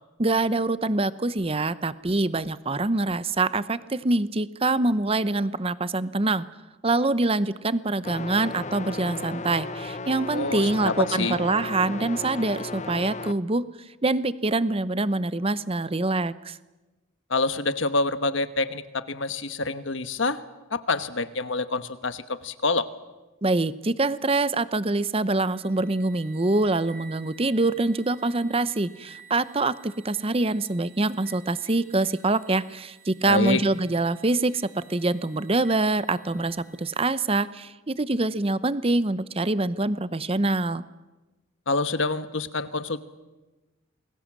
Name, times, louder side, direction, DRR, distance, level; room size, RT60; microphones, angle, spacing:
voice 1, 0.2-6.5 6.8-13.7 14.0-16.6 23.4-40.8, right 2 dB, 30° right, 15 dB, 0.7 m, -25 dB
sound 1, 8.0-13.3, left 3 dB, 35° left, 0.8 m, -35 dB
voice 2, 10.3-11.4 17.3-20.4 20.7-22.9 33.3-33.6 41.7-43.0, left 3 dB, 65° left, 11 dB, 1.3 m, -27 dB
sound 2, 25.5-37.6, right 4 dB, 45° right, 4.2 m, -53 dB
28.5 x 21.5 x 7.5 m, 1.1 s
head